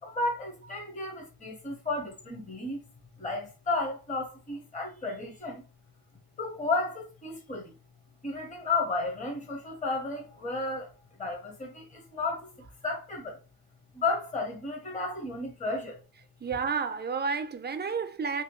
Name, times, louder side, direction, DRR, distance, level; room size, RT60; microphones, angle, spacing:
voice 1, 0.0-2.8 3.2-5.6 6.4-7.8 8.2-10.9 11.2-12.5 12.8-13.4 13.9-16.0, left 3 dB, 20° left, 1.0 m, -33 dB
voice 2, 16.4-18.4, right 5 dB, 30° right, 0.5 m, -31 dB
3.0 x 2.9 x 3.0 m
wide cardioid pair, 105°, 37 cm